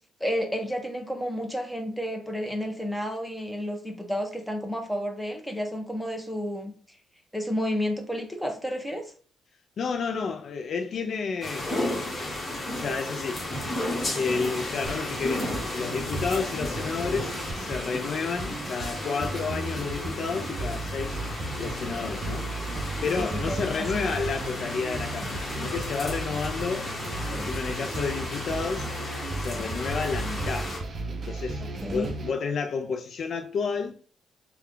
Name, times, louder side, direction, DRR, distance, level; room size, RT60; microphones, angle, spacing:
voice 1, 0.2-6.7 7.3-9.1 23.1-23.7 31.6-32.1, equal, 5° left, 0.9 m, -31 dB
voice 2, 9.8-11.7 12.7-13.4 14.1-21.2 21.6-22.5 23.0-26.9 27.3-28.9 29.4-30.7 31.3-34.0, left 5 dB, 60° left, 0.4 m, -31 dB
sound 1, 11.4-30.8, left 1 dB, 30° left, 1.3 m, -34 dB
sound 2, 14.9-32.3, right 2 dB, 45° right, 0.5 m, -35 dB
3.3 x 2.3 x 3.7 m
cardioid pair, 90°, 0 cm